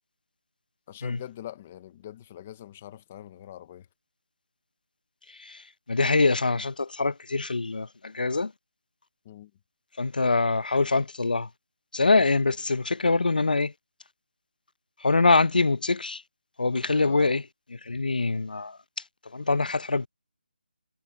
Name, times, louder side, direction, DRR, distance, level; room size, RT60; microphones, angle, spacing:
voice 1, 0.9-3.9 9.3-9.5 17.0-17.3, left 11 dB, 5° left, 0.4 m, -43 dB
voice 2, 5.9-8.5 10.0-11.5 11.9-13.7 15.0-16.2 16.6-17.5 17.9-18.8 19.3-20.1, left 3 dB, 60° left, 0.6 m, -24 dB
figure-of-eight pair, 180°, 5 cm